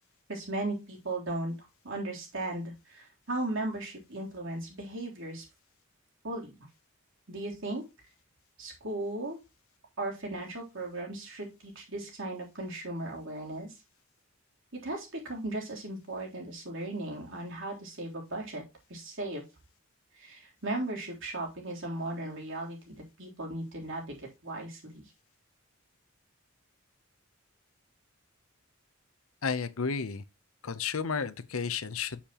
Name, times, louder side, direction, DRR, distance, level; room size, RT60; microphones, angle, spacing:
voice 1, 0.3-5.4 6.2-6.5 7.3-7.8 8.6-9.4 10.0-13.8 14.7-18.6 18.9-19.5 20.1-24.1 24.4-25.1, right 2 dB, 65° right, 3.5 m, -37 dB
voice 2, 29.4-30.2 30.6-32.2, left 5 dB, 85° left, 0.8 m, -32 dB
8.5 x 7.4 x 3.0 m
head